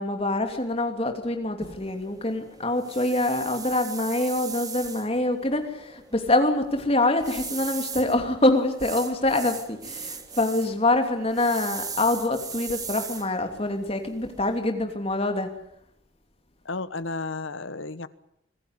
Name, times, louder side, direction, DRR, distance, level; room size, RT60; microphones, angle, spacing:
voice 1, 0.0-15.5, left 2 dB, 30° left, 6 dB, 2.9 m, -25 dB
sound 1, 1.6-14.6, right 6 dB, 20° right, 1.8 m, -39 dB
voice 2, 16.6-18.1, left 3 dB, 70° left, 15 dB, 1.2 m, -32 dB
25.5 x 16.5 x 9.8 m, 0.74 s
head